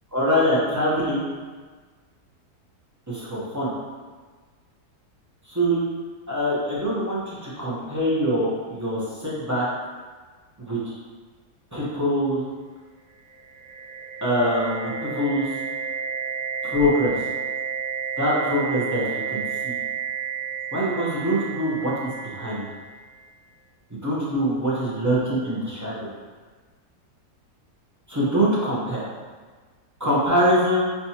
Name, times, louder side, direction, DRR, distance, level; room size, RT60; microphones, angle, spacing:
voice 1, 0.1-1.2 3.1-3.7 5.5-5.8 6.3-9.6 10.6-10.9 11.7-12.4 14.2-15.4 16.6-17.2 18.2-19.7 20.7-22.7 24.0-25.9 28.1-29.0 30.0-30.8, equal, 15° right, -8 dB, 0.7 m, -24 dB
sound 1, 13.3-23.1, right 6 dB, 80° right, 1.5 m, -31 dB
5.7 x 3.0 x 2.9 m, 1.4 s
omnidirectional pair, 1.8 m